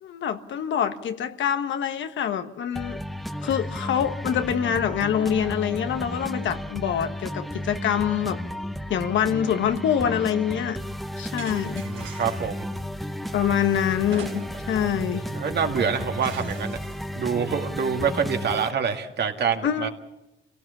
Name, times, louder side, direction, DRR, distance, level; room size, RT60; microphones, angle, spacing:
voice 1, 0.0-3.0 3.4-8.4 8.9-10.8 11.2-11.9 13.3-15.3 19.6-19.9, left 9 dB, 70° left, 9 dB, 1.5 m, -25 dB
sound 1, 2.7-18.7, left 1 dB, ahead, 1.0 m, -33 dB
sound 2, 11.4-12.6 14.1-14.8 15.2-15.3 16.2-17.1, right 7 dB, 85° right, 4.2 m, -43 dB
voice 2, 11.8-12.7 15.3-16.8 17.2-19.9, right 6 dB, 55° right, 5 dB, 2.3 m, -26 dB
27.5 x 17.5 x 7.2 m, 0.98 s
cardioid pair, 90°, 20 cm